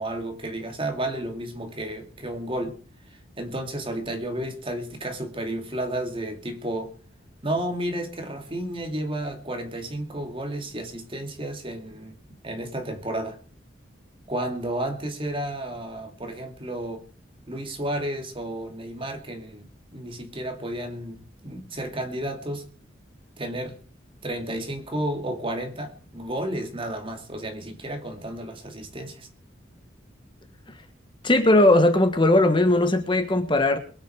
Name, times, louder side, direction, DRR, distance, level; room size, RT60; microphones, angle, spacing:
voice 1, 0.0-2.8 3.4-6.9 7.4-12.1 12.4-13.4 14.3-17.0 17.5-22.6 23.4-23.7 24.2-29.3, right 1 dB, 30° right, 2.5 m, -32 dB
voice 2, 31.2-33.8, left 1 dB, 25° left, 1.4 m, -18 dB
22.5 x 9.7 x 4.8 m
head